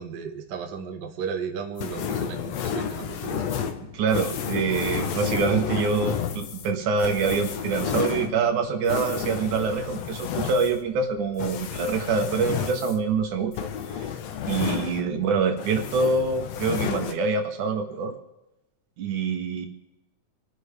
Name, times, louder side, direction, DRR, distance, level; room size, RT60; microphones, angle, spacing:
voice 1, 0.0-3.5, right 6 dB, 50° right, 5 dB, 1.3 m, -34 dB
sound 1, 1.8-15.3 15.6-17.1, left 8 dB, 65° left, 2.0 m, -31 dB
voice 2, 3.9-14.1 14.5-18.2 19.0-19.7, right 5 dB, 80° right, 5 dB, 2.8 m, -25 dB
27.5 x 9.5 x 3.5 m, 0.95 s
omnidirectional pair, 3.5 m